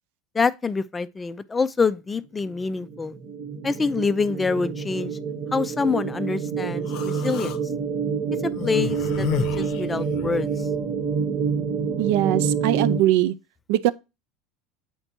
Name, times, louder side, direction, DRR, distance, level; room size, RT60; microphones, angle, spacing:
voice 1, 0.3-3.2 3.6-5.1 5.5-7.6 8.4-10.5, left 4 dB, 15° left, 0.3 m, -26 dB
sound 1, 2.4-13.0, right 6 dB, 35° right, 0.9 m, -27 dB
Human voice, 6.9-7.6 8.5-10.5, left 10 dB, 55° left, 0.6 m, -31 dB
voice 2, 12.0-13.3 13.7-13.9, right 14 dB, 70° right, 0.4 m, -21 dB
8.0 x 4.4 x 2.8 m
supercardioid pair, 150°, 0 cm